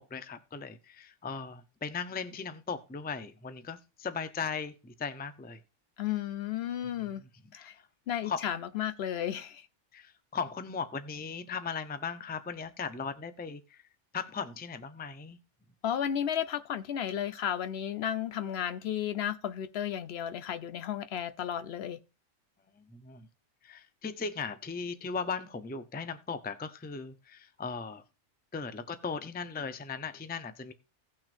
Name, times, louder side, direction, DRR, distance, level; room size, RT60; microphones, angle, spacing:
voice 1, 0.0-5.6 6.8-7.9 8.2-8.5 9.9-13.8 14.1-15.4 22.7-23.3 23.6-28.0 28.5-30.7, left 5 dB, 15° left, 0.4 m, -38 dB
voice 2, 6.0-7.2 7.5-7.8 8.1-9.7 15.8-22.0, left 10 dB, 65° left, 0.8 m, -33 dB
17.5 x 6.1 x 2.5 m
omnidirectional pair, 1.2 m